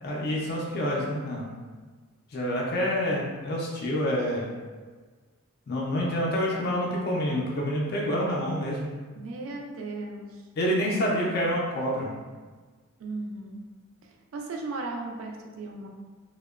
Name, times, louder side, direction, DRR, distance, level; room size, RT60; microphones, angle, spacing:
voice 1, 0.0-1.5 2.3-4.5 5.7-8.9 10.6-12.1, equal, 45° left, -3 dB, 0.4 m, -27 dB
voice 2, 9.1-10.4 13.0-13.6 14.0-15.9, right 3 dB, 60° right, 1 dB, 0.3 m, -36 dB
2.7 x 2.0 x 2.3 m, 1.4 s
head